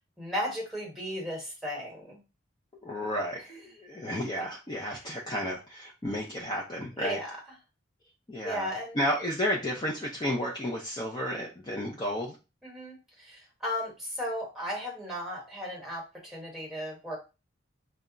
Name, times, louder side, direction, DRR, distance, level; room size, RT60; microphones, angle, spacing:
voice 1, 0.2-2.2 4.4-4.5 7.0-7.4 8.4-9.0 12.6-17.2, equal, ahead, -4 dB, 1.0 m, -35 dB
voice 2, 2.8-7.2 8.3-8.7 8.9-12.4, equal, 20° left, -3 dB, 0.4 m, -32 dB
2.3 x 2.0 x 3.7 m, 0.29 s
head